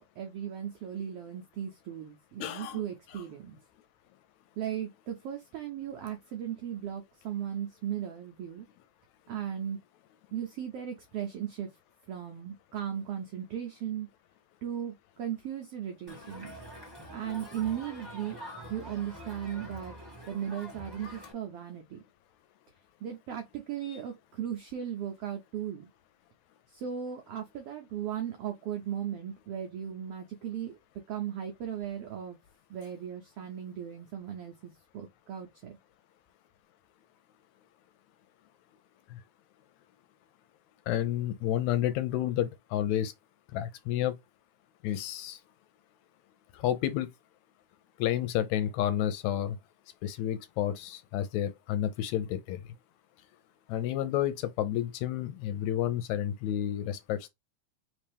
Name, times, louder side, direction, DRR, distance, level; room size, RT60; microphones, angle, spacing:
voice 1, 0.0-3.6 4.6-8.7 9.3-9.8 10.3-11.7 12.1-14.1 14.6-16.5 17.1-18.4 18.7-20.0 20.3-22.0 23.0-25.9 26.7-30.7 31.1-32.4 32.7-35.8, right 9 dB, 80° right, 1.3 m, -37 dB
voice 2, 2.4-2.8 23.9-24.0 39.1-39.2 40.9-43.1 43.5-44.1 44.8-45.4 46.5-47.1 48.0-49.6 50.0-52.6 53.7-57.3, left 11 dB, 80° left, 1.8 m, -30 dB
Crowd, 16.1-21.3, equal, 10° right, 1.5 m, -45 dB
4.3 x 3.4 x 3.4 m
omnidirectional pair, 3.5 m